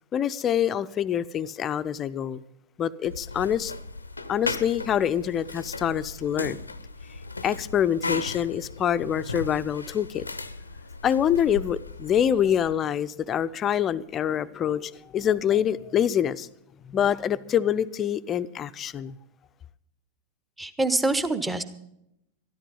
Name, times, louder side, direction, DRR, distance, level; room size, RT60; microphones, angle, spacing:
voice 1, 0.1-2.4 2.8-3.7 4.3-6.6 7.4-10.2 11.0-16.5 16.8-19.2, left 9 dB, 25° left, 0.5 m, -25 dB
sound 1, 3.0-12.8, left 3 dB, 80° left, 0.6 m, -36 dB
voice 2, 20.6-21.6, right 2 dB, 10° right, 1.0 m, -25 dB
13.0 x 12.5 x 5.5 m
figure-of-eight pair, 90°, 0 cm